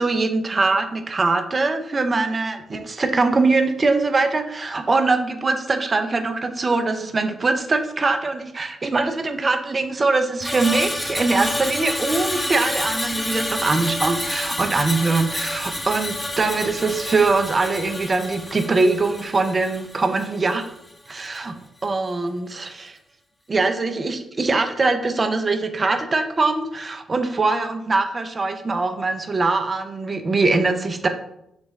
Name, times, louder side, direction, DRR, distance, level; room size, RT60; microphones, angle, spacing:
voice 1, 0.0-20.7 21.1-21.5 21.8-23.0 23.5-31.1, right 3 dB, 35° right, 7 dB, 0.4 m, -22 dB
Screech, 10.4-20.8 21.1-21.4, left 1 dB, 15° left, 0.5 m, -29 dB
4.1 x 3.1 x 2.3 m, 0.80 s
supercardioid pair, 60°, 0 cm